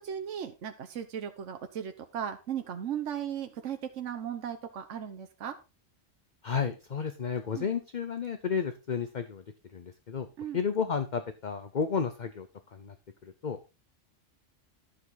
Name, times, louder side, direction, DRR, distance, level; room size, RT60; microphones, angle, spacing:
voice 1, 0.0-5.6 7.5-7.6 10.4-10.6, right 9 dB, 75° right, 7 dB, 1.2 m, -36 dB
voice 2, 6.4-9.4 9.7-10.3 10.5-12.9 13.2-13.6, left 6 dB, 40° left, 9 dB, 0.9 m, -32 dB
11.5 x 7.2 x 4.0 m, 0.29 s
omnidirectional pair, 1.3 m